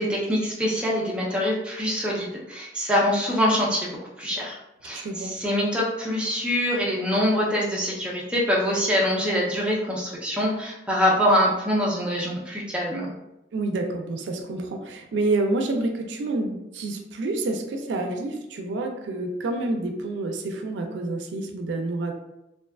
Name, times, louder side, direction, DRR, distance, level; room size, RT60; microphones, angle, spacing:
voice 1, 0.0-4.6 4.8-13.1, equal, 5° right, -4 dB, 0.4 m, -24 dB
voice 2, 4.9-5.3 13.5-22.1, right 2 dB, 80° right, 4 dB, 0.4 m, -28 dB
2.6 x 2.2 x 2.2 m, 0.94 s
head